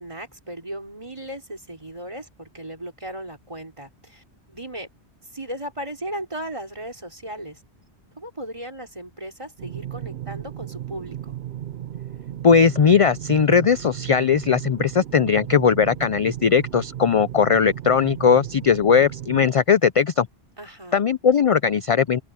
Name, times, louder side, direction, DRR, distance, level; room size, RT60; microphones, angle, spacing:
voice 1, 0.0-4.9 5.3-7.6 8.2-11.4 20.6-21.0, right 1 dB, 25° right, 3.8 m, -36 dB
sound 1, 9.6-19.5, right 11 dB, 65° right, 0.8 m, -35 dB
voice 2, 12.4-20.3 20.9-22.2, left 6 dB, 50° left, 0.4 m, -18 dB
open air
omnidirectional pair, 1.1 m